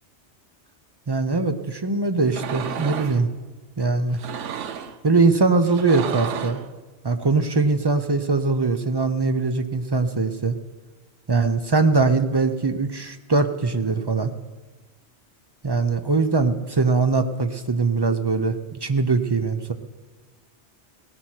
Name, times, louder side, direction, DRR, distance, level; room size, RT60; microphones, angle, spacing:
voice 1, 1.1-3.3 3.8-4.2 5.0-6.6 7.0-10.6 11.3-14.3 15.6-19.7, right 3 dB, 30° right, 9 dB, 0.5 m, -21 dB
sound 1, 2.3-3.2 4.1-5.0 5.6-6.7, right 8 dB, 85° right, 1.0 m, -32 dB
17.0 x 13.0 x 4.4 m, 1.3 s
omnidirectional pair, 1.2 m